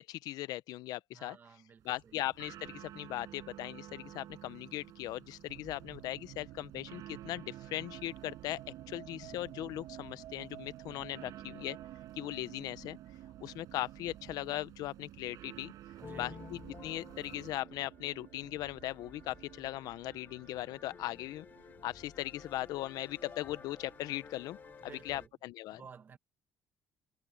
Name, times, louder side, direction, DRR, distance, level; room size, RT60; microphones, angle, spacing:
voice 1, 0.0-1.4 1.8-8.6 8.9-11.8 12.2-13.0 13.4-15.7 16.2-21.5 21.8-25.8, left 15 dB, 75° left, 0.7 m, -39 dB
voice 2, 1.1-2.2 16.0-16.4 24.8-25.3 25.7-26.2, right 6 dB, 30° right, 1.4 m, -54 dB
sound 1, 1.8-17.6, right 13 dB, 60° right, 6.7 m, -53 dB
sound 2, 5.5-25.3, right 14 dB, 80° right, 1.9 m, -53 dB
sound 3, 16.0-25.3, left 6 dB, 30° left, 1.0 m, -53 dB
cardioid pair, 165°, 7 cm